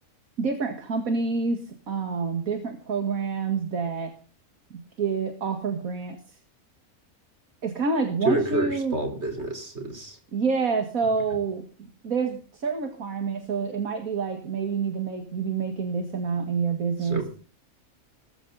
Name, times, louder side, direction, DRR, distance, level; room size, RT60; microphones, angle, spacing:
voice 1, 0.4-4.1 4.7-6.4 7.6-9.0 10.3-11.7 12.0-17.3, right 5 dB, 65° right, 5 dB, 2.3 m, -28 dB
voice 2, 8.2-10.2 17.0-17.3, right 2 dB, 45° right, 5 dB, 4.9 m, -28 dB
20.5 x 14.0 x 4.1 m, 0.36 s
omnidirectional pair, 1.6 m